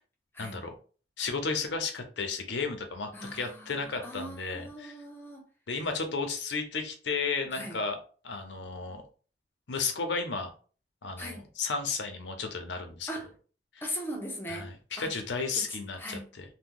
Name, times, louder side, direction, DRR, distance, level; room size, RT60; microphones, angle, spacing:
voice 1, 0.4-0.7 1.2-5.0 5.7-8.0 8.2-9.0 9.7-10.5 11.0-13.1 13.7-13.8 14.5-16.4, left 4 dB, 85° left, 0.7 m, -33 dB
voice 2, 3.1-5.5 7.5-7.8 11.2-11.4 13.1-13.3 13.8-14.7 15.0-15.1 15.6-16.3, equal, 15° left, 0.6 m, -39 dB
2.8 x 2.2 x 3.7 m
head